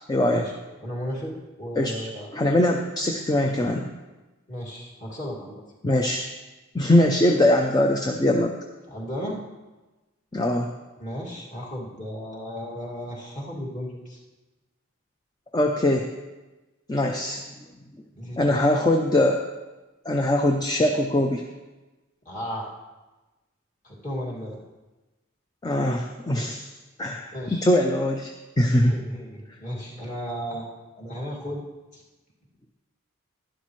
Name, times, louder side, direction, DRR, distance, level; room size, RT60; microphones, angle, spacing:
voice 1, 0.1-0.4 1.8-1.9 2.3-3.9 5.8-6.2 6.7-8.5 10.3-10.7 15.5-16.1 16.9-17.4 18.4-19.4 20.1-21.4 25.6-26.7 27.0-28.3 28.6-28.9, left 1 dB, 20° left, 3 dB, 0.5 m, -22 dB
voice 2, 0.8-2.4 4.5-5.6 8.9-9.4 11.0-14.2 18.1-18.7 22.2-22.7 23.8-24.6 27.3-27.7 28.8-31.6 31.9-32.0, equal, 35° left, -4 dB, 2.3 m, -34 dB
11.5 x 11.5 x 3.2 m, 1.1 s
head